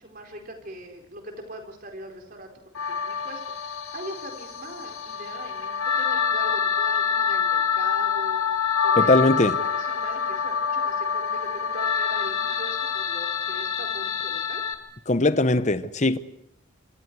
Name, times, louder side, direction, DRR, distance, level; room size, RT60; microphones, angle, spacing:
voice 1, 0.0-2.5 2.9-8.4 8.8-14.6, right 1 dB, 45° right, 4.5 m, -41 dB
sound 1, 2.7-14.7, left 7 dB, 85° left, 2.2 m, -26 dB
voice 2, 9.0-9.6 15.1-16.2, left 2 dB, 35° left, 0.9 m, -20 dB
27.0 x 27.0 x 4.8 m
head